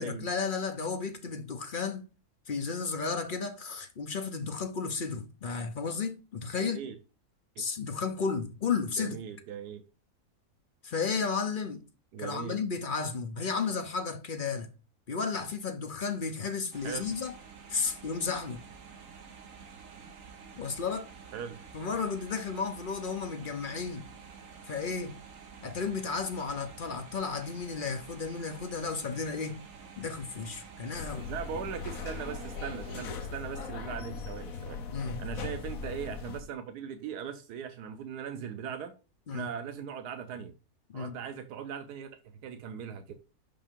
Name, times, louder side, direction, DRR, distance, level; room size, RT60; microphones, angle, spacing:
voice 1, 0.0-2.1 2.5-6.8 7.6-9.2 10.8-11.8 12.2-14.7 15.1-17.3 17.7-18.6 20.6-21.1 21.7-24.1 24.7-25.1 25.6-29.6 30.0-31.3 34.9-35.3 39.3-39.5 40.9-41.1, left 5 dB, 50° left, 0.6 m, -33 dB
voice 2, 6.6-6.9 9.0-9.8 12.1-12.6 16.8-17.2 21.3-21.6 31.3-34.8 35.2-38.9 39.3-40.5 40.9-42.1 42.4-43.1, right 8 dB, 85° right, 1.3 m, -39 dB
sound 1, 16.7-33.1, right 6 dB, 60° right, 1.4 m, -49 dB
sound 2, 30.9-36.4, left 5 dB, 65° left, 1.2 m, -39 dB
5.8 x 5.5 x 3.6 m
omnidirectional pair, 1.7 m